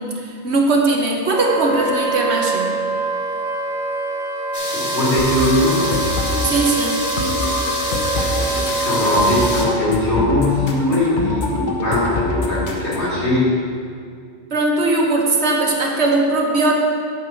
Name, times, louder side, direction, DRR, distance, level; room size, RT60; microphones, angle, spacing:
voice 1, 0.0-2.8 6.4-7.0 14.5-16.7, right 2 dB, 70° right, 0 dB, 1.3 m, -19 dB
Wind instrument woodwind instrument, 1.3-9.8, right 3 dB, 40° right, 1.0 m, -25 dB
sound 1, 4.5-9.7, left 1 dB, 20° left, 1.3 m, -28 dB
voice 2, 4.7-5.9 8.2-13.5, left 1 dB, 70° left, -6 dB, 2.7 m, -20 dB
sound 2, 5.2-13.2, left 2 dB, 45° left, 1.0 m, -26 dB
8.6 x 4.7 x 6.4 m, 2.3 s
omnidirectional pair, 1.2 m